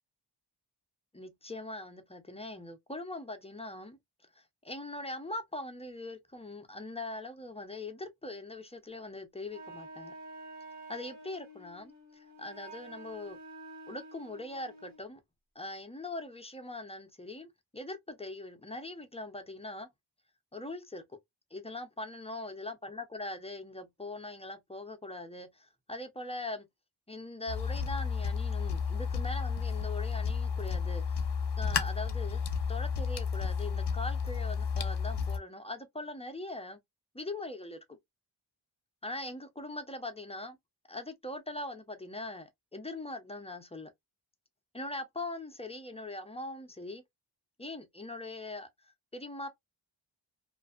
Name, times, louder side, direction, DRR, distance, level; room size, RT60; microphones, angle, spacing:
voice 1, 1.1-4.0 4.4-10.1 10.9-13.4 13.9-15.2 15.6-19.9 20.5-21.0 21.5-26.7 27.1-31.3 31.6-32.4 32.7-36.8 37.1-38.0 39.0-40.6 40.9-43.9 44.7-47.0 47.6-48.7 49.1-49.5, left 2 dB, 15° left, 0.4 m, -41 dB
Wind instrument woodwind instrument, 9.5-15.0, right 2 dB, 40° right, 1.3 m, -49 dB
sound 1, 27.5-35.4, left 6 dB, 60° left, 0.6 m, -32 dB
2.5 x 2.4 x 2.3 m
wide cardioid pair, 110°, 45 cm